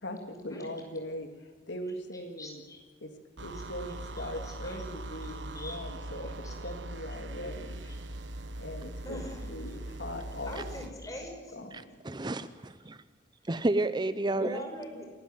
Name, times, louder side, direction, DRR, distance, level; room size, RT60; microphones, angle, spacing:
voice 1, 0.0-2.6 3.0-3.1 3.4-7.8 8.6-9.2 9.5-10.6 11.5-12.0, left 1 dB, 80° left, 5 dB, 2.7 m, -40 dB
voice 2, 1.8-2.8 3.5-3.6 4.2-4.8 5.2-5.3 5.5-5.8 6.2-6.5 7.8-8.0 9.0-9.8 10.4-11.8 14.2-15.1, left 1 dB, 20° left, 2 dB, 5.7 m, -43 dB
sound 1, 3.4-10.9, right 1 dB, 90° right, 1.4 m, -41 dB
voice 3, 11.7-13.0 13.5-14.6, right 2 dB, 25° right, 13 dB, 0.6 m, -31 dB
27.5 x 13.0 x 9.1 m, 1.5 s
head